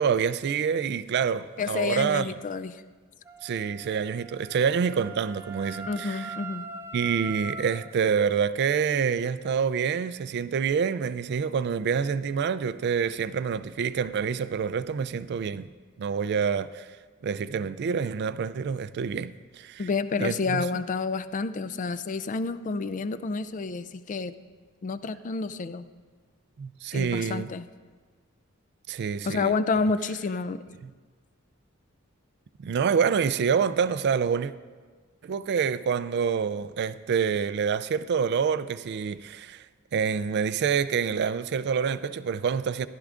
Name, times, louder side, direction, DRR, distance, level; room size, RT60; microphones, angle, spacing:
voice 1, 0.0-2.3 3.4-6.3 6.9-15.7 16.0-16.9 17.2-19.9 20.2-20.6 26.6-27.5 28.9-29.5 30.8-30.9 32.6-34.5 35.2-39.6 39.9-42.9, right 6 dB, 50° right, 0.3 m, -27 dB
voice 2, 1.6-2.8 5.9-6.7 19.8-24.3 24.8-25.9 26.9-27.7 29.2-30.6, left 4 dB, 35° left, 0.4 m, -29 dB
Wind instrument woodwind instrument, 3.2-7.9, right 2 dB, 10° right, 0.6 m, -41 dB
15.0 x 11.5 x 2.5 m
head